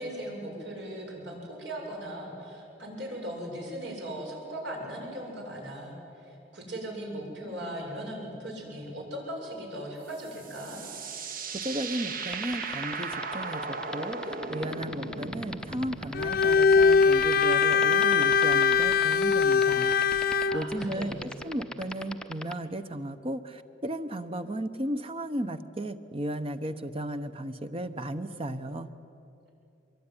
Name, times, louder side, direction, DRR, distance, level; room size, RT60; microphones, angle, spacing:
voice 1, 0.0-10.8 20.5-21.2, right 1 dB, 75° right, -1 dB, 7.7 m, -38 dB
sound 1, 10.1-17.3, right 4 dB, 50° right, 1.4 m, -37 dB
voice 2, 11.5-19.9 20.5-21.2 21.4-28.9, right 1 dB, 30° right, 10 dB, 1.0 m, -35 dB
sound 2, 12.2-22.5, left 1 dB, 5° left, 0.8 m, -37 dB
Bowed string instrument, 16.1-20.6, left 5 dB, 50° left, 0.6 m, -22 dB
24.5 x 22.5 x 9.9 m, 2.8 s
head